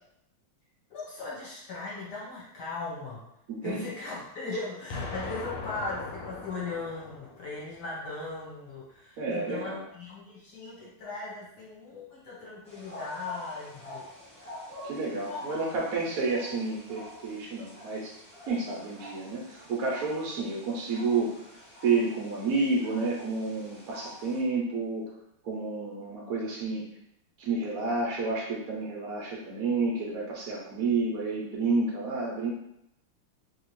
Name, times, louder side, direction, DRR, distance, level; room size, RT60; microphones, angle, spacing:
voice 1, 0.9-3.3 3.6-14.1 15.1-15.6 16.0-16.1, left 3 dB, 55° left, -6 dB, 1.4 m, -38 dB
voice 2, 3.5-3.9 9.2-9.8 14.8-18.1 18.5-21.4 21.8-25.1 25.4-26.9 27.4-32.5, right 3 dB, 85° right, -2 dB, 0.7 m, -30 dB
Explosion, 4.9-7.9, left 4 dB, 85° left, 1.5 m, -39 dB
sound 1, 12.6-24.4, equal, 5° left, 0.5 m, -47 dB
3.3 x 2.7 x 3.0 m, 0.80 s
omnidirectional pair, 2.4 m